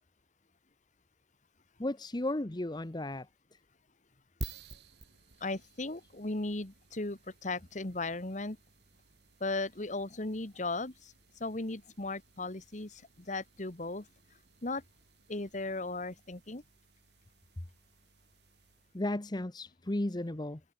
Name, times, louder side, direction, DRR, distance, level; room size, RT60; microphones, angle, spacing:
voice 1, 1.8-3.3 18.9-20.6, left 1 dB, 25° left, 0.9 m, -34 dB
sound 1, 4.4-19.1, right 2 dB, 75° right, 3.3 m, -52 dB
voice 2, 5.4-8.6 9.4-11.1 11.4-14.1 14.6-14.8 15.3-16.6, left 2 dB, 45° left, 1.6 m, -36 dB
head